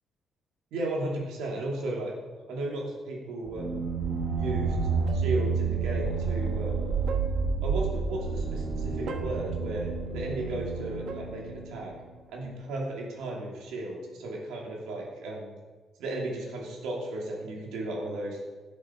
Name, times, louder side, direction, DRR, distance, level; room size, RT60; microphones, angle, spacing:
voice 1, 0.7-2.1 2.5-3.8 4.3-4.8 5.1-7.0 7.6-9.9 10.1-11.9 12.3-15.5 16.0-18.4, right 2 dB, 90° right, -2 dB, 2.8 m, -34 dB
sound 1, 3.5-12.0, right 4 dB, 70° right, 1.4 m, -30 dB
12.0 x 7.3 x 4.7 m, 1.3 s
cardioid pair, 90°, 0 cm